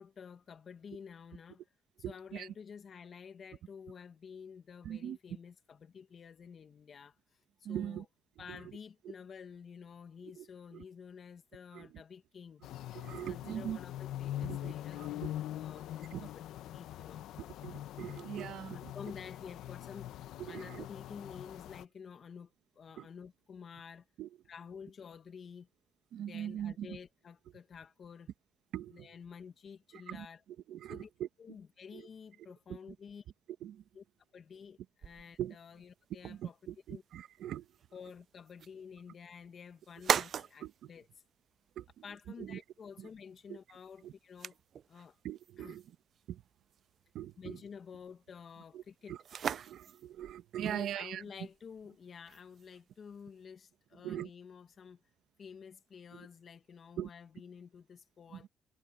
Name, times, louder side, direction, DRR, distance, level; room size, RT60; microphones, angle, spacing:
voice 1, 0.0-1.6 2.1-7.4 7.7-8.1 8.4-12.6 13.1-16.4 16.7-17.2 18.7-24.1 24.5-25.7 26.2-28.3 28.9-30.4 30.9-31.1 31.4-33.3 33.9-34.0 34.3-36.6 36.9-37.0 37.9-41.1 42.0-44.6 44.9-45.2 45.6-45.8 47.4-49.2 50.6-55.0 55.4-58.5, left 6 dB, 50° left, 1.8 m, -50 dB
voice 2, 2.0-2.5 4.8-5.2 7.6-8.0 8.5-8.6 10.4-10.5 10.7-10.8 11.7-12.0 12.9-13.8 14.4-15.3 16.1-16.3 17.6-18.9 20.4-20.9 23.0-23.1 24.2-24.3 26.1-27.0 28.7-29.1 29.9-30.3 30.7-31.3 31.9-32.1 33.6-33.8 35.4-35.5 36.2-37.7 40.6-40.9 41.8-42.0 42.4-42.6 43.0-43.1 43.5-43.6 44.0-44.1 45.2-45.8 46.3-46.4 47.1-47.6 48.7-48.8 49.1-49.2 49.5-51.2 54.0-54.3 56.1-56.3 57.0-57.1 58.3-58.5, right 11 dB, 75° right, 1.3 m, -41 dB
sound 1, 12.6-21.8, left 13 dB, 85° left, 1.0 m, -43 dB
sound 2, 35.0-53.4, right 8 dB, 60° right, 0.4 m, -43 dB
cardioid pair, 90°, 0 cm